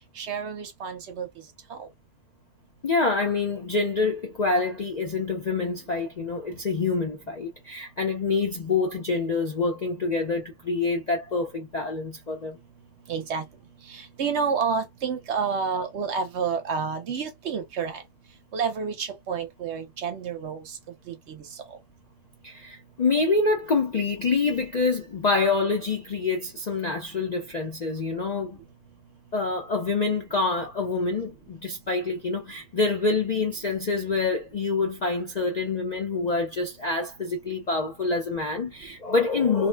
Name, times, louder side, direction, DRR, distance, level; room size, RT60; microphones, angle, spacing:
voice 1, 0.2-1.3 1.7-1.8 13.1-13.4 13.9-18.0 18.5-20.6 21.1-21.2, right 6 dB, 60° right, 0.9 m, -29 dB
voice 2, 2.8-12.6 22.4-28.6 29.3-39.7, left 4 dB, 55° left, 0.5 m, -26 dB
2.7 x 2.0 x 3.2 m
omnidirectional pair, 1.4 m